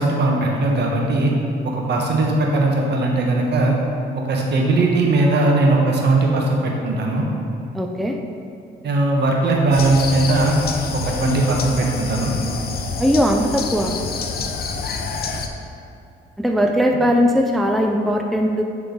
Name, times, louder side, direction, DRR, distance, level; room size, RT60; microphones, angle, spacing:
voice 1, 0.0-1.3 1.6-3.8 4.1-7.2 8.8-10.6 10.9-12.3, right 2 dB, 60° right, -1 dB, 1.3 m, -19 dB
voice 2, 7.7-8.2 13.0-13.9 16.4-18.6, equal, ahead, 3 dB, 0.4 m, -19 dB
sound 1, 9.7-15.5, left 4 dB, 50° left, 0.6 m, -27 dB
10.0 x 3.7 x 3.9 m, 2.7 s
cardioid pair, 90°, 20 cm